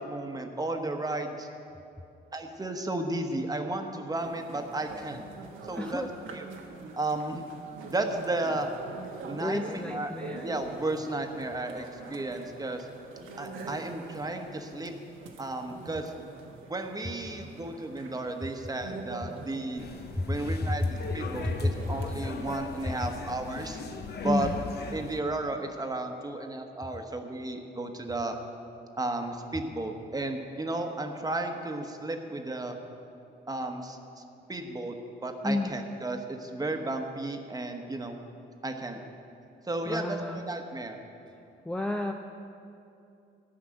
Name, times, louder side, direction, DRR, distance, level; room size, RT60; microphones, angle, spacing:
voice 1, 0.0-1.5 2.3-5.3 5.7-6.0 6.3-6.5 6.9-7.4 7.9-8.7 9.3-10.1 10.4-12.9 13.4-14.9 15.4-16.1 16.7-19.9 20.3-23.8 24.2-24.5 24.9-28.4 29.0-32.8 33.5-34.2 34.5-38.2 38.6-39.0 39.7-41.0, right 2 dB, 20° right, 4 dB, 1.1 m, -33 dB
sound 1, 4.1-23.4, right 3 dB, 80° right, 1.3 m, -45 dB
voice 2, 5.8-6.1 9.4-10.5 20.2-20.3 20.7-20.9 21.4-21.7 24.2-24.6 35.4-35.7 39.9-40.4 41.6-42.1, left 2 dB, 5° left, 3 dB, 0.5 m, -30 dB
sound 2, 19.8-25.2, left 5 dB, 55° left, 0.9 m, -40 dB
13.0 x 5.9 x 8.8 m, 2.7 s
cardioid pair, 90°, 20 cm